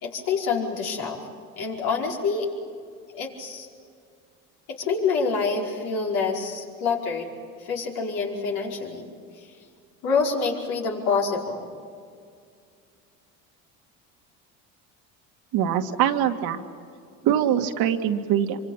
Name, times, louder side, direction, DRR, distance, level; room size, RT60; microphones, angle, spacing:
voice 1, 0.0-1.3 1.6-2.5 3.1-3.7 4.7-7.3 7.6-9.1 9.4-9.5 10.0-11.7, left 5 dB, 65° left, -1 dB, 5.1 m, -27 dB
voice 2, 15.5-16.6 17.2-18.6, right 10 dB, 65° right, 6 dB, 2.0 m, -23 dB
25.5 x 24.5 x 8.9 m, 2.3 s
hypercardioid pair, 80°, 40 cm